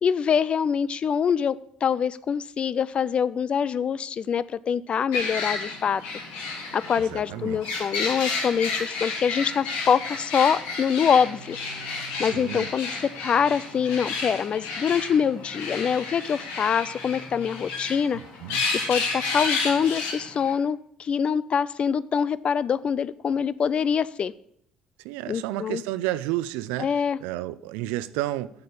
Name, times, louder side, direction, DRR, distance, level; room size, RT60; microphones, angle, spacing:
voice 1, 0.0-6.0 6.7-11.6 12.2-18.2 18.9-24.3 25.3-25.8 26.8-27.2, left 7 dB, 45° left, 18 dB, 0.3 m, -24 dB
sound 1, 5.1-20.5, left 4 dB, 80° left, 1.7 m, -31 dB
voice 2, 7.1-7.7 12.2-12.7 18.4-18.6 25.0-26.9 27.2-28.5, right 15 dB, 80° right, 17 dB, 0.4 m, -31 dB
7.9 x 6.7 x 5.3 m, 0.70 s
hypercardioid pair, 60°, 3 cm